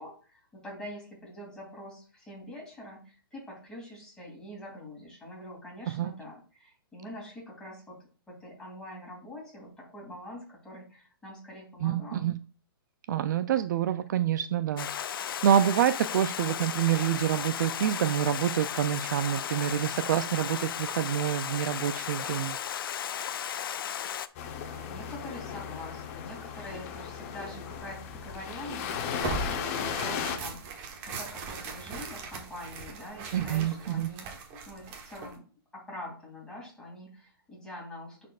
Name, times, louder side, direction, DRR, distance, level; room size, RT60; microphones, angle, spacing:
voice 1, 0.0-8.0 8.3-12.3 24.7-30.6 31.0-35.4 35.7-38.3, left 1 dB, 5° left, -3 dB, 2.7 m, -45 dB
voice 2, 11.8-12.4 13.1-22.6 33.3-34.1, right 10 dB, 50° right, 12 dB, 0.4 m, -27 dB
Stream, 14.8-24.3, left 9 dB, 65° left, 0.5 m, -35 dB
sound 1, 24.3-30.4, left 7 dB, 35° left, 0.9 m, -36 dB
Tearing, 29.2-35.4, right 4 dB, 30° right, 1.2 m, -39 dB
10.5 x 4.2 x 2.4 m, 0.38 s
hypercardioid pair, 150°, 13 cm